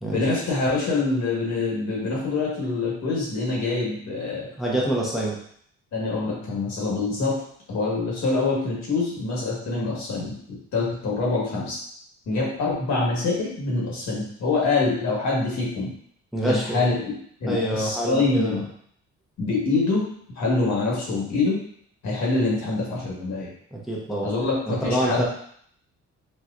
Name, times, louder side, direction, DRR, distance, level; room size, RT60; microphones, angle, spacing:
voice 1, 0.0-4.5 5.9-7.4 7.7-10.3 10.7-11.8 12.3-15.9 16.4-18.6 19.4-20.1 20.3-21.6 22.0-23.5 24.2-25.2, left 3 dB, 65° left, -4 dB, 1.5 m, -25 dB
voice 2, 4.6-5.4 16.3-16.8 17.5-18.6 23.7-24.3 24.7-25.2, right 1 dB, ahead, -4 dB, 0.7 m, -26 dB
4.3 x 2.3 x 2.4 m, 0.64 s
cardioid pair, 90°, 30 cm